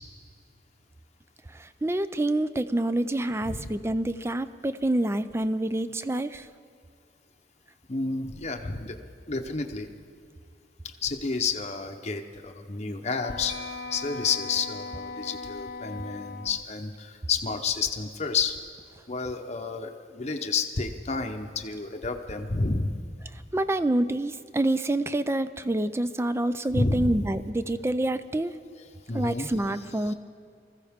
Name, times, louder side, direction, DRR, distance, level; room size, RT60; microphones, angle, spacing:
voice 1, 1.5-6.5 23.5-28.5 29.1-30.1, right 1 dB, 15° right, 13 dB, 0.4 m, -27 dB
voice 2, 7.9-9.0 9.3-9.9 11.0-18.5 19.1-23.0 26.7-27.2 28.8-29.5 30.1-30.2, left 4 dB, 40° left, 4 dB, 0.8 m, -30 dB
Wind instrument woodwind instrument, 13.2-16.7, left 4 dB, 55° left, 0.4 m, -39 dB
Marimba xylophone, 13.5-15.2, right 5 dB, 60° right, 1.4 m, -48 dB
20.5 x 14.5 x 3.6 m, 2.3 s
head